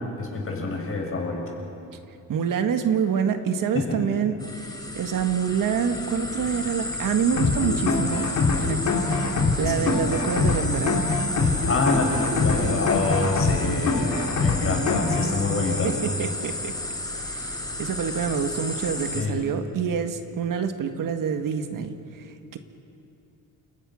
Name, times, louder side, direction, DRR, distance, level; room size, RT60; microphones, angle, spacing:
voice 1, 0.2-1.5 3.7-4.0 9.7-9.9 11.4-15.9 19.1-19.4, left 3 dB, 40° left, 0 dB, 6.8 m, -27 dB
voice 2, 2.3-11.1 15.7-16.7 17.2-22.6, right 7 dB, 65° right, 7 dB, 1.7 m, -27 dB
sound 1, 4.4-19.2, left 1 dB, 10° left, 3.5 m, -32 dB
sound 2, 7.4-15.4, left 3 dB, 55° left, 3.5 m, -24 dB
29.5 x 27.5 x 6.4 m, 2.7 s
cardioid pair, 135°, 35 cm